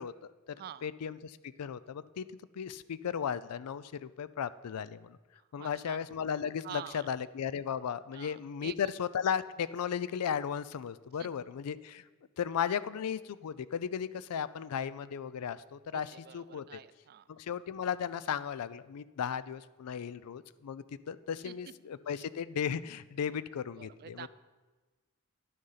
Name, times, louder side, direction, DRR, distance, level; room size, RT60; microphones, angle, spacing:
voice 1, 0.0-0.6 0.8-2.3 2.5-5.2 5.5-12.0 12.4-16.8 17.3-24.3, left 7 dB, 90° left, 17 dB, 0.4 m, -36 dB
voice 2, 5.3-6.0 6.6-7.1 8.1-8.7 11.2-11.3 15.9-17.3 21.4-21.5 22.2-22.3 23.8-24.3, right 10 dB, 45° right, 16 dB, 0.3 m, -47 dB
10.5 x 6.4 x 5.7 m, 1.3 s
head